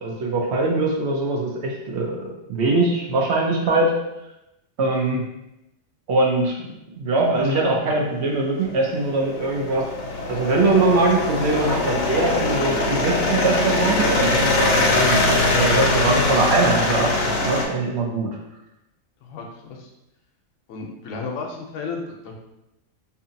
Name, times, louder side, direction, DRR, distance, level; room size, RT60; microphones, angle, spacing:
voice 1, 0.0-4.0 4.8-5.3 6.1-6.7 7.0-9.9 10.3-18.4, right 2 dB, 65° right, -1 dB, 0.8 m, -22 dB
sound 1, 8.6-17.7, left 2 dB, 60° left, 0.7 m, -22 dB
voice 2, 19.2-19.9 20.7-22.4, left 4 dB, 90° left, 1 dB, 1.0 m, -33 dB
2.7 x 2.5 x 2.6 m, 0.89 s
omnidirectional pair, 1.3 m